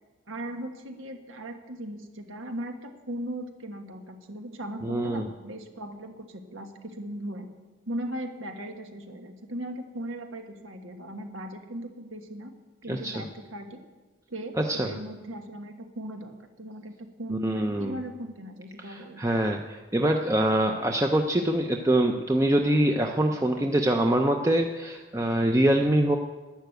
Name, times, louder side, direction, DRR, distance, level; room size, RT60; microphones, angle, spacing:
voice 1, 0.3-7.5 7.9-12.5 12.8-13.8 14.3-19.2, right 1 dB, 90° right, 6 dB, 1.5 m, -38 dB
voice 2, 4.8-5.3 12.9-13.1 14.6-14.9 17.3-18.0 18.8-26.2, right 1 dB, 15° right, 3 dB, 0.6 m, -24 dB
11.5 x 10.5 x 7.9 m, 1.3 s
head